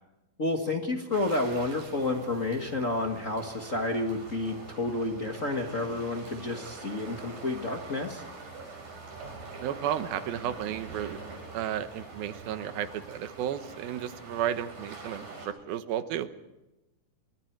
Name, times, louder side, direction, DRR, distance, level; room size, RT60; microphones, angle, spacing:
voice 1, 0.4-8.2, left 2 dB, 45° left, 3 dB, 1.0 m, -30 dB
sound 1, 1.1-15.5, right 3 dB, 60° right, 7.2 m, -45 dB
voice 2, 9.6-11.2 11.5-16.3, right 10 dB, 85° right, 11 dB, 2.9 m, -33 dB
27.0 x 24.0 x 4.7 m, 1.0 s
omnidirectional pair, 4.2 m